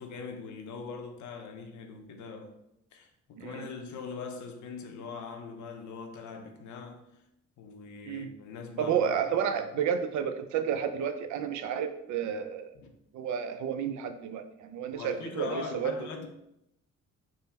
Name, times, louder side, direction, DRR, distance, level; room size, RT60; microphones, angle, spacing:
voice 1, 0.0-2.5 2.9-7.1 7.6-9.1 12.7-12.9 14.8-16.3, left 5 dB, 70° left, 0.7 m, -41 dB
voice 2, 3.4-3.7 8.1-8.3 8.8-12.7 13.1-16.1, right 8 dB, 75° right, 0.5 m, -31 dB
3.6 x 2.0 x 4.1 m
cardioid pair, 90°, 30 cm